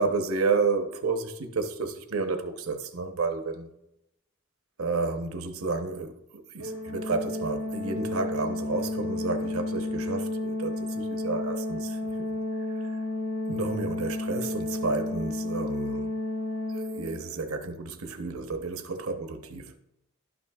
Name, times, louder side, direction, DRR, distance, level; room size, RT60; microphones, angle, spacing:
voice 1, 0.0-3.7 4.8-12.1 12.7-13.0 13.5-16.1 16.7-19.8, right 4 dB, 80° right, 0.8 m, -31 dB
Organ, 6.6-17.5, left 2 dB, 85° left, 1.1 m, -32 dB
12.0 x 6.1 x 2.3 m
head